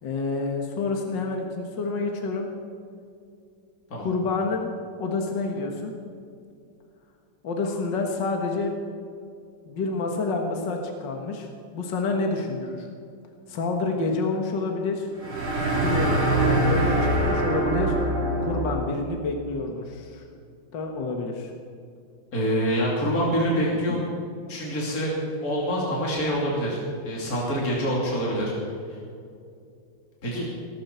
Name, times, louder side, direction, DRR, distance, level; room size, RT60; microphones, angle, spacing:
voice 1, 0.0-2.5 4.0-4.7 5.0-5.9 7.4-8.7 9.7-12.9 13.5-15.1 15.7-16.1 16.4-18.0 18.4-20.2 20.7-21.5 23.9-24.1, left 3 dB, 60° left, 2 dB, 2.2 m, -28 dB
sound 1, 15.2-18.9, right 1 dB, 75° right, 4.5 m, -23 dB
voice 2, 22.3-24.0 24.5-25.1 25.4-29.0 30.2-30.5, equal, 45° left, -4 dB, 3.4 m, -26 dB
17.5 x 15.5 x 4.5 m, 2.4 s
omnidirectional pair, 2.3 m